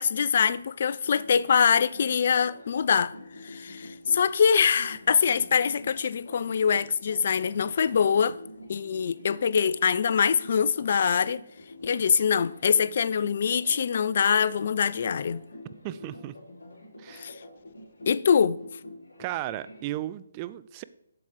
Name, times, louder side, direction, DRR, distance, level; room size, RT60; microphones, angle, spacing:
voice 1, 0.0-3.1 3.4-8.4 8.7-11.4 11.8-15.4 17.2-17.3 18.1-18.6, left 7 dB, 50° left, 0.4 m, -24 dB
sound 1, 1.0-19.8, left 1 dB, 65° left, 3.8 m, -47 dB
voice 2, 15.8-16.3 17.0-17.3 19.2-20.8, right 14 dB, 25° right, 0.4 m, -35 dB
7.8 x 7.1 x 4.6 m
figure-of-eight pair, 145°, 0 cm